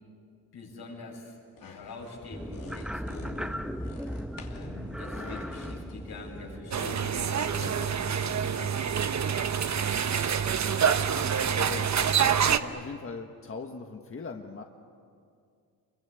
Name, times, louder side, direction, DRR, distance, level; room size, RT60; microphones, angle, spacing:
voice 1, 0.5-1.3 1.6-3.6 4.4-7.8 8.2-8.7, left 3 dB, 75° left, -1 dB, 7.6 m, -44 dB
sound 1, 1.6-6.6, left 5 dB, 60° left, 3.0 m, -50 dB
sound 2, 2.3-8.3, equal, ahead, 1.1 m, -38 dB
sound 3, 6.7-12.6, right 7 dB, 45° right, 1.1 m, -26 dB
voice 2, 11.6-11.9 12.5-14.6, left 4 dB, 35° left, 3 dB, 1.5 m, -40 dB
28.0 x 23.5 x 8.5 m, 2.3 s
cardioid pair, 90°, 38 cm